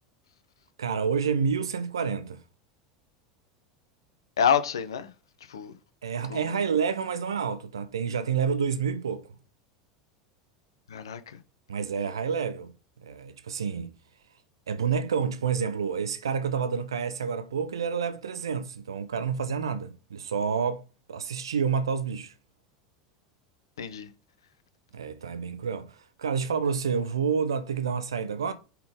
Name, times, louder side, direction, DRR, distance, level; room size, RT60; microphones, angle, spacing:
voice 1, 0.8-2.4 6.0-9.3 11.7-12.7 13.0-13.9 14.7-20.8 21.1-22.3 24.9-28.5, right 6 dB, 80° right, 0.6 m, -29 dB
voice 2, 4.4-5.1 5.5-5.7 6.3-6.5 10.9-11.4 23.8-24.1, left 7 dB, 75° left, 0.7 m, -27 dB
5.6 x 3.9 x 5.2 m
figure-of-eight pair, 80°, 2 cm